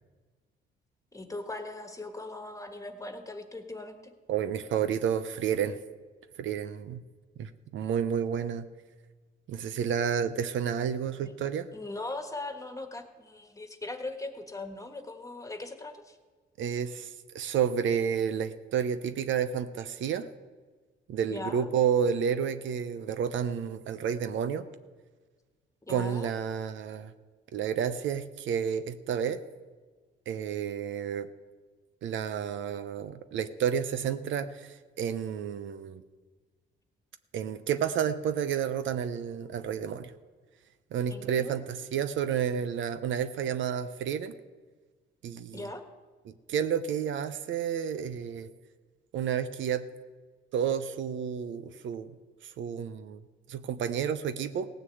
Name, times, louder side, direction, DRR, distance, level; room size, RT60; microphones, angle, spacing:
voice 1, 1.1-4.1 11.2-11.3 11.7-16.2 21.3-21.7 25.8-26.3 41.1-41.5 45.5-45.9, left 2 dB, 15° left, 6 dB, 1.5 m, -39 dB
voice 2, 4.3-5.8 6.4-7.0 7.4-8.7 9.5-11.7 16.6-20.3 21.1-24.7 25.9-27.1 27.5-29.4 30.3-31.3 32.0-36.0 37.3-40.1 40.9-44.3 45.2-45.6 46.5-48.5 49.1-49.8 50.5-52.1 52.4-53.2 53.5-54.7, right 8 dB, 75° right, 11 dB, 0.7 m, -30 dB
17.0 x 6.7 x 7.9 m, 1.4 s
cardioid pair, 90°, 20 cm